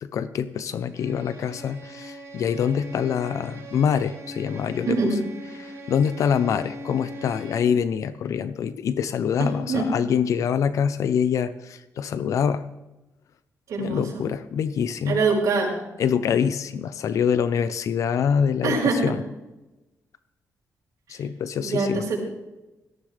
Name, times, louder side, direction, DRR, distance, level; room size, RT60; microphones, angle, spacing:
voice 1, 0.0-5.0 5.6-12.6 13.8-15.2 16.0-19.2 21.1-22.0, left 7 dB, 65° left, 13 dB, 0.6 m, -25 dB
Bowed string instrument, 0.9-7.8, left 1 dB, 50° right, 5.5 m, -40 dB
voice 2, 4.9-5.2 9.4-9.9 13.7-14.2 15.1-15.7 18.6-19.1 21.6-22.2, right 4 dB, 70° right, -4 dB, 4.7 m, -24 dB
17.5 x 13.5 x 3.4 m, 1.0 s
wide cardioid pair, 175°, 6 cm